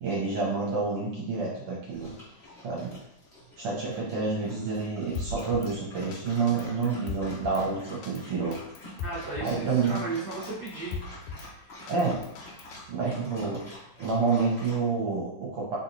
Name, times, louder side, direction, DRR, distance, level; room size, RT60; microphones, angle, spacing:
voice 1, 0.0-2.1 2.6-3.0 3.6-8.6 9.4-10.0 11.9-12.2 12.9-13.6 14.0-15.8, right 4 dB, 70° right, -4 dB, 1.4 m, -28 dB
Dog, 1.9-14.8, left 2 dB, 45° left, 0.8 m, -48 dB
Drum kit, 5.2-5.7 6.1-6.2 6.5-7.6 8.0-8.2 8.5-9.6 10.0-10.1 10.3-11.5 11.9-12.8, left 4 dB, 80° left, 2.0 m, -38 dB
voice 2, 9.0-11.7, right 3 dB, 85° right, -7 dB, 0.8 m, -36 dB
4.4 x 4.2 x 2.7 m, 0.78 s
omnidirectional pair, 3.5 m